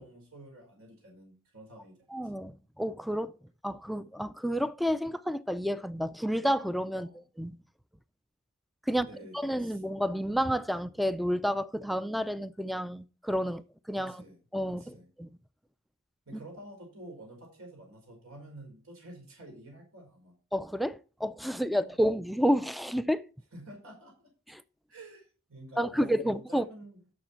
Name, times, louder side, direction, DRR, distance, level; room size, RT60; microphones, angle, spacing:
voice 1, 0.0-2.3 6.9-7.2 9.0-9.8 13.9-14.4 14.7-15.1 16.3-20.3 21.7-22.0 23.5-24.1 24.9-27.0, right 1 dB, 85° right, 4.8 m, -49 dB
voice 2, 2.1-3.3 3.6-7.1 7.4-7.5 8.9-9.1 9.3-14.2 14.5-14.8 15.2-15.3 20.5-23.2 24.5-24.6 25.8-26.7, equal, ahead, 0.3 m, -30 dB
11.5 x 6.8 x 4.4 m
head